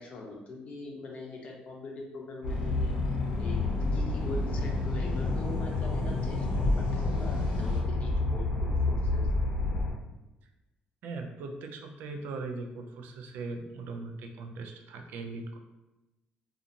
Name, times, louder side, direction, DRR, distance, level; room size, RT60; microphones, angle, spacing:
voice 1, 0.0-3.0 3.4-3.6 3.9-6.7 6.9-9.3, left 3 dB, 45° left, -1 dB, 0.6 m, -42 dB
sound 1, 2.4-9.9, left 2 dB, 85° left, 0.7 m, -29 dB
sound 2, 2.4-7.8, equal, 30° right, 0.9 m, -44 dB
voice 2, 11.0-15.6, right 3 dB, 80° right, 4 dB, 0.4 m, -39 dB
2.8 x 2.4 x 2.5 m, 1.0 s
cardioid pair, 150°, 3 cm